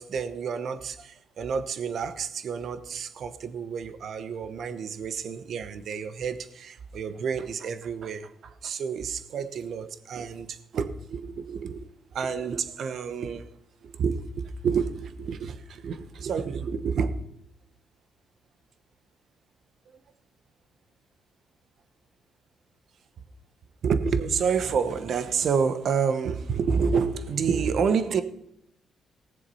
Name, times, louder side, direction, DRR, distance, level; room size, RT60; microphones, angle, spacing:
voice 1, 0.0-13.5 13.8-17.2 23.8-28.2, right 6 dB, 60° right, 1.0 m, -29 dB
18.5 x 7.3 x 5.5 m
cardioid pair, 90°, 0 cm